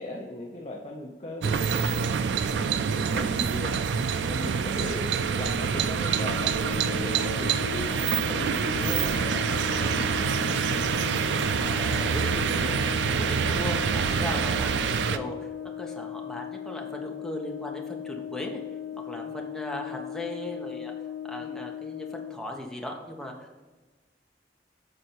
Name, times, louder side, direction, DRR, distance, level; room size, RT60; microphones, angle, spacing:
voice 1, 0.0-2.0 2.5-3.8 4.2-7.9 8.3-10.5 19.1-19.4 21.4-21.6, left 1 dB, 35° left, -1 dB, 0.7 m, -38 dB
sound 1, 1.4-15.2, right 6 dB, 80° right, 0.4 m, -26 dB
Brass instrument, 6.1-22.5, left 10 dB, 85° left, 0.6 m, -38 dB
voice 2, 11.6-12.8 13.0-15.5 15.8-18.6 19.0-20.9 21.3-23.6, left 1 dB, 5° left, 0 dB, 0.9 m, -37 dB
6.6 x 4.3 x 4.4 m, 1.2 s
head